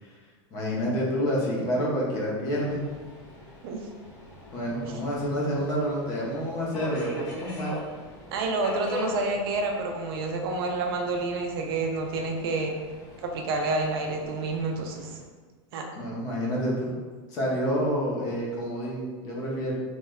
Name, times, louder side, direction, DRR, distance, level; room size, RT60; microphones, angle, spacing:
voice 1, 0.5-2.8 4.5-7.7 15.9-16.9 17.3-19.7, equal, 25° left, -4 dB, 0.5 m, -28 dB
Subway metro underground, 2.6-15.2, left 1 dB, 80° left, 1.3 m, -43 dB
voice 2, 8.3-12.7 13.2-15.1 15.7-15.8, right 3 dB, 50° right, 2 dB, 0.4 m, -28 dB
3.0 x 2.1 x 3.5 m, 1.4 s
supercardioid pair, 180°, 15 cm